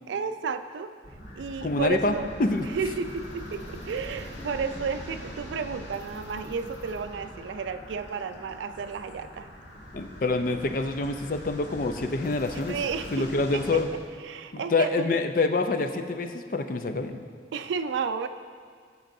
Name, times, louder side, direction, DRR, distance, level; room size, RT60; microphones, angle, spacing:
voice 1, 0.1-0.9 1.4-2.3 2.6-9.5 12.7-13.8 14.2-15.2 17.5-18.3, right 5 dB, 85° right, 9 dB, 0.4 m, -32 dB
sound 1, 1.0-13.8, equal, 90° left, 1.7 m, -42 dB
voice 2, 1.6-2.7 9.9-12.8 13.1-13.9 14.5-17.2, left 3 dB, 50° left, 7 dB, 0.4 m, -26 dB
14.0 x 6.1 x 2.7 m, 2.1 s
head